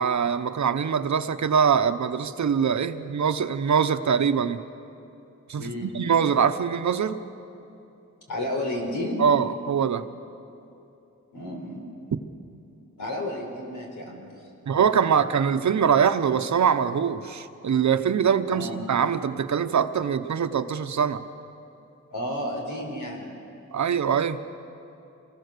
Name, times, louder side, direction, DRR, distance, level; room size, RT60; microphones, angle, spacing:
voice 1, 0.0-4.6 5.5-7.2 9.2-10.1 14.7-21.2 23.7-24.4, right 7 dB, 65° right, 10 dB, 1.0 m, -23 dB
voice 2, 5.6-5.9 8.3-9.2 11.3-11.8 13.0-14.3 18.5-18.8 22.1-23.3, left 1 dB, 80° left, 0 dB, 5.0 m, -31 dB
26.5 x 20.0 x 6.8 m, 2.9 s
wide cardioid pair, 120°, 31 cm